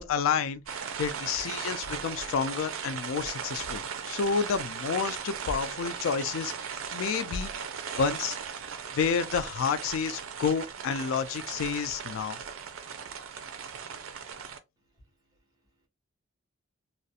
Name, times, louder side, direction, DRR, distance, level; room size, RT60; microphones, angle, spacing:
voice 1, 0.0-7.5 8.0-8.4 8.9-12.4, left 6 dB, 70° left, 0.3 m, -30 dB
sound 1, 0.7-14.6, right 7 dB, 75° right, 0.4 m, -38 dB
voice 2, 14.8-15.9, equal, 20° right, 0.7 m, -66 dB
2.4 x 2.1 x 2.7 m
head